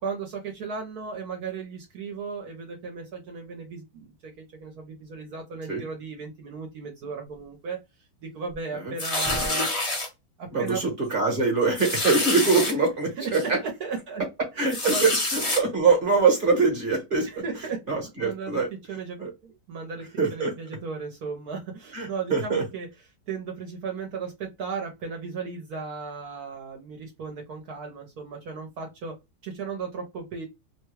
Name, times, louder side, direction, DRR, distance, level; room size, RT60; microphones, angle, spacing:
voice 1, 0.0-7.8 8.2-9.7 10.4-10.8 12.5-12.6 13.2-14.2 14.5-15.1 17.2-18.6 18.9-20.1 20.3-22.9 23.3-29.1 29.4-30.4, right 5 dB, 65° right, 2 dB, 1.2 m, -36 dB
sound 1, 9.0-10.1 10.7-10.8 11.1-11.2 11.8-12.7 13.3-13.4 14.7-15.6, left 2 dB, 25° left, 0.7 m, -27 dB
voice 2, 10.5-13.6 14.6-17.4 17.9-18.7 19.2-19.3 20.2-20.5 21.9-22.6, right 4 dB, 35° right, 0 dB, 1.1 m, -23 dB
3.0 x 2.2 x 3.1 m, 0.22 s
omnidirectional pair, 1.8 m